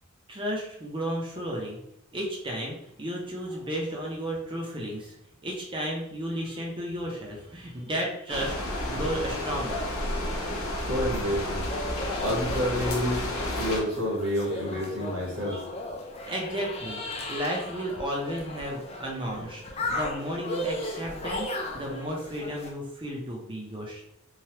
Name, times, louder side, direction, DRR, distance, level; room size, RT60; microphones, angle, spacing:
voice 1, 0.3-1.8 2.1-5.2 5.4-9.9 15.5-15.6 16.2-24.0, equal, 25° right, -2 dB, 0.6 m, -33 dB
sound 1, 8.3-13.8, left 1 dB, 70° left, 0.7 m, -31 dB
voice 2, 10.9-11.7 12.2-13.2 13.6-15.6, equal, 65° right, -3 dB, 1.1 m, -28 dB
sound 2, 11.1-22.7, left 1 dB, 30° left, 0.4 m, -36 dB
3.2 x 2.2 x 2.8 m, 0.75 s
head